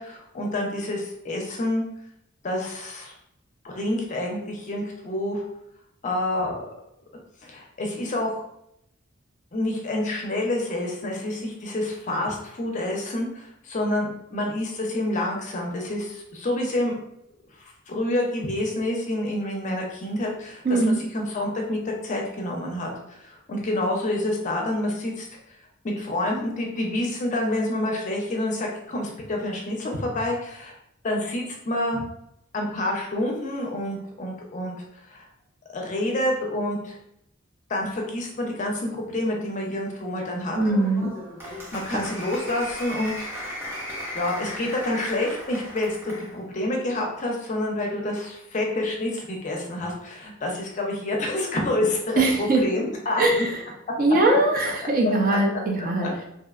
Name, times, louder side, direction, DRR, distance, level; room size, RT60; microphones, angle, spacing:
voice 1, 0.0-1.8 2.4-3.1 3.6-5.5 6.0-6.7 7.4-8.4 9.5-17.0 17.6-25.3 25.8-30.7 31.0-32.0 32.5-34.8 35.1-35.2 35.7-37.0 37.7-40.6 41.7-43.3 44.1-53.5 55.0-55.4 56.0-56.1, left 1 dB, 35° left, 0 dB, 0.5 m, -28 dB
voice 2, 20.6-21.0 40.6-41.1 52.2-52.6 53.2-53.5 54.0-56.1, right 2 dB, 45° right, 1 dB, 0.4 m, -21 dB
Applause, 40.5-46.3, left 1 dB, 10° right, 0.8 m, -36 dB
2.6 x 2.1 x 2.3 m, 0.78 s
head